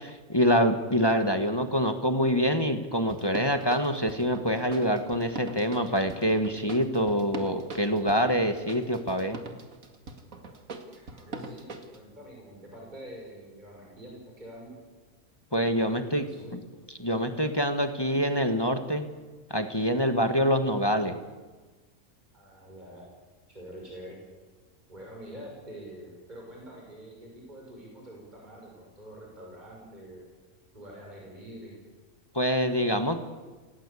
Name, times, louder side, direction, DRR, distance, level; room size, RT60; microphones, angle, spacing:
voice 1, 0.0-9.4 15.5-16.2 16.5-16.6 17.0-19.1 19.5-21.1 32.3-33.2, equal, 15° left, 7 dB, 1.5 m, -25 dB
sound 1, 3.1-12.0, right 2 dB, 70° right, 2.6 m, -41 dB
voice 2, 10.7-11.7 11.9-14.8 15.5-15.9 16.2-16.5 22.3-23.0 23.5-24.2 24.9-30.3 30.7-31.8, right 1 dB, 30° right, -2 dB, 6.1 m, -46 dB
28.0 x 18.5 x 8.4 m, 1.3 s
omnidirectional pair, 1.5 m